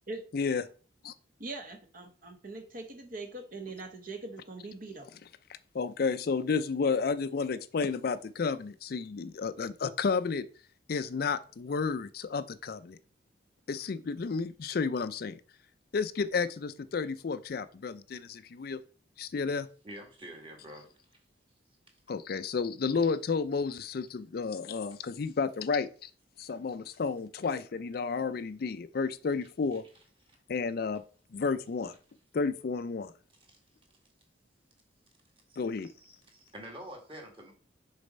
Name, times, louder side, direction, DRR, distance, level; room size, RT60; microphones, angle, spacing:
voice 1, 1.4-5.1, right 2 dB, 45° right, 1.0 m, -42 dB
voice 2, 5.5-10.5 10.9-13.0 13.7-15.4 15.9-18.8 19.2-19.7 22.1-26.1 26.4-29.8 30.5-31.0 31.3-31.9 32.3-33.1 35.6-35.9, left 5 dB, 50° left, 0.4 m, -31 dB
voice 3, 19.8-20.9 33.5-33.6 35.5-35.6 35.8-37.5, right 1 dB, 30° right, 1.9 m, -47 dB
6.7 x 4.1 x 5.3 m
head